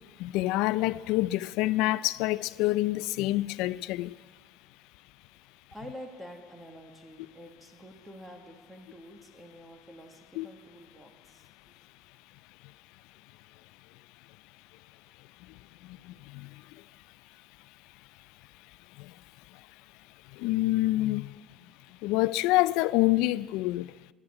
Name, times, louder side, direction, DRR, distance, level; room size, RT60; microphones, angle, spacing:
voice 1, 0.2-4.1 10.4-10.5 16.3-16.5 20.4-21.3 22.0-23.9, left 17 dB, 80° left, 0.4 m, -26 dB
voice 2, 5.7-11.7, equal, 5° right, 1.8 m, -48 dB
14.5 x 9.7 x 8.6 m
cardioid pair, 105°, 0 cm